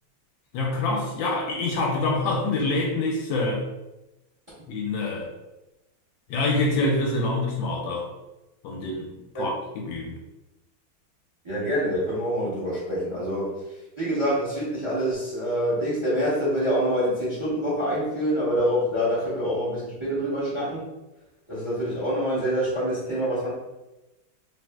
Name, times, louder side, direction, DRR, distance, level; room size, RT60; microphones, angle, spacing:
voice 1, 0.5-3.6 4.7-5.3 6.3-8.1 8.6-9.1 9.3-10.1, left 2 dB, 75° left, -1 dB, 1.2 m, -26 dB
voice 2, 11.4-13.5 14.0-20.9 21.5-23.5, equal, 15° right, -10 dB, 1.2 m, -26 dB
3.3 x 3.0 x 2.2 m, 1.0 s
omnidirectional pair, 2.2 m